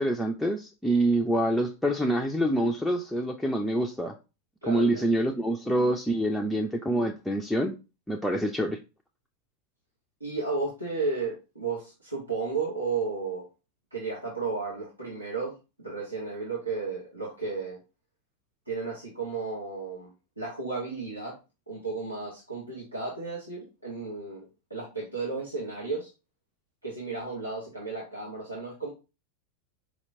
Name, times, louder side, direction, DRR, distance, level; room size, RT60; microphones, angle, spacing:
voice 1, 0.0-4.1 4.7-7.8 8.1-8.8, right 1 dB, ahead, 0 dB, 0.4 m, -26 dB
voice 2, 4.6-5.1 10.2-13.5 13.9-15.5 15.8-17.8 18.7-20.1 20.4-21.4 21.7-26.1 26.8-28.9, right 4 dB, 85° right, -6 dB, 1.2 m, -33 dB
4.6 x 2.8 x 2.7 m, 0.29 s
figure-of-eight pair, 90°, 0 cm